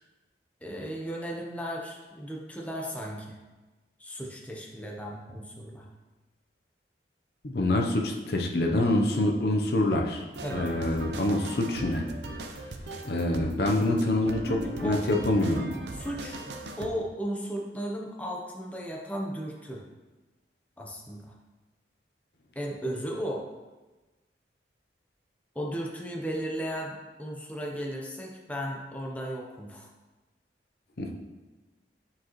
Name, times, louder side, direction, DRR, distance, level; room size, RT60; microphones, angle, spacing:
voice 1, 0.6-3.4 4.0-5.9 10.4-10.7 14.5-15.0 15.9-16.4 16.8-19.8 20.8-21.3 22.6-23.5 25.5-29.9, equal, 10° left, -1 dB, 0.7 m, -35 dB
voice 2, 7.4-10.2 10.5-12.1 13.0-14.4 14.8-15.7 31.0-31.1, left 1 dB, 60° left, 1 dB, 0.7 m, -26 dB
sound 1, 10.3-16.9, right 2 dB, 75° right, 0.6 m, -39 dB
8.7 x 4.9 x 3.0 m, 1.2 s
head